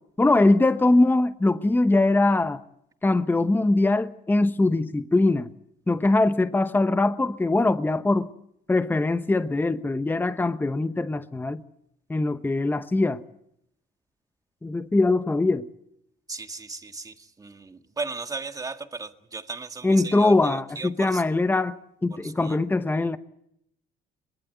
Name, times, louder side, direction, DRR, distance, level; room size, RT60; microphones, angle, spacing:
voice 1, 0.2-2.6 3.0-5.5 5.9-8.3 8.7-11.6 12.1-13.2 14.6-15.7 19.8-21.8 22.0-23.2, left 2 dB, 10° left, 11 dB, 1.0 m, -22 dB
voice 2, 16.3-17.1 17.4-17.6 18.0-20.3 20.8-21.2 22.4-22.6, right 4 dB, 20° right, 7 dB, 1.9 m, -35 dB
23.0 x 22.5 x 8.2 m, 0.76 s
cardioid pair, 110°, 17 cm